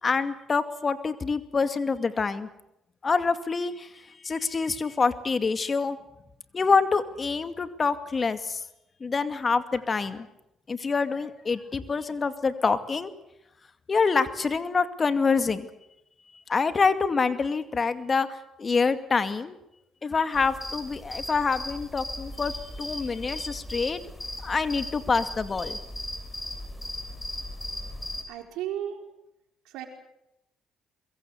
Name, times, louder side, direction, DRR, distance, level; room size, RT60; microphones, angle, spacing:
voice 1, 0.0-2.5 3.0-3.9 4.2-6.0 6.5-8.6 9.0-10.3 10.7-13.1 13.9-15.7 16.5-18.3 18.6-19.6 20.0-24.0 24.4-25.8, left 4 dB, 40° left, 10 dB, 2.3 m, -26 dB
sound 1, 20.3-28.2, left 1 dB, 15° left, 6.5 m, -37 dB
voice 2, 28.3-29.0 29.7-29.9, right 11 dB, 80° right, 4 dB, 4.5 m, -34 dB
23.5 x 22.5 x 8.1 m, 0.85 s
supercardioid pair, 60°, 0 cm